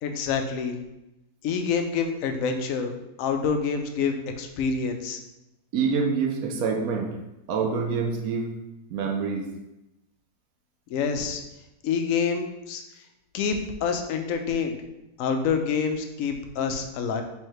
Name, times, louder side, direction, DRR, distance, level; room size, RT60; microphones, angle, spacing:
voice 1, 0.0-0.8 1.4-2.9 3.2-5.2 10.9-11.4 11.8-12.8 13.3-14.8 15.2-17.2, left 6 dB, 70° left, 5 dB, 0.9 m, -27 dB
voice 2, 5.7-7.1 7.5-8.5 8.9-9.5, right 5 dB, 75° right, 3 dB, 1.1 m, -26 dB
3.5 x 3.2 x 4.6 m, 0.94 s
omnidirectional pair, 1.6 m